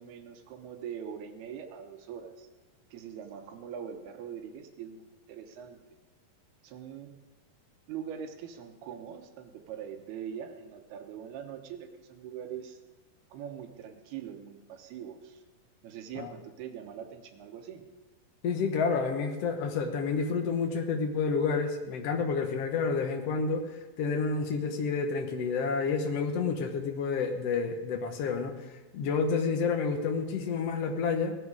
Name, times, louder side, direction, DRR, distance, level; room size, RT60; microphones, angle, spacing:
voice 1, 0.0-2.5 2.9-5.8 6.6-7.1 7.9-12.8 13.3-15.4 15.8-17.8, right 8 dB, 80° right, 5 dB, 3.0 m, -42 dB
voice 2, 18.4-23.7 24.0-28.5 28.9-31.4, left 5 dB, 60° left, 4 dB, 1.7 m, -29 dB
18.0 x 11.0 x 4.9 m, 1.1 s
omnidirectional pair, 4.4 m